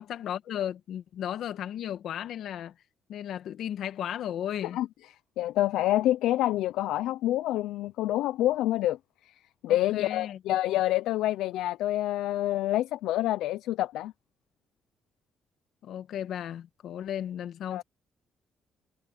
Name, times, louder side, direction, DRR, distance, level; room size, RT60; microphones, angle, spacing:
voice 1, 0.0-2.7 3.1-4.8 9.7-10.4 15.8-17.8, left 10 dB, 75° left, 1.7 m, -35 dB
voice 2, 5.4-9.0 9.6-14.1 17.7-17.8, left 14 dB, 90° left, 0.5 m, -27 dB
cardioid pair, 90°, 0 cm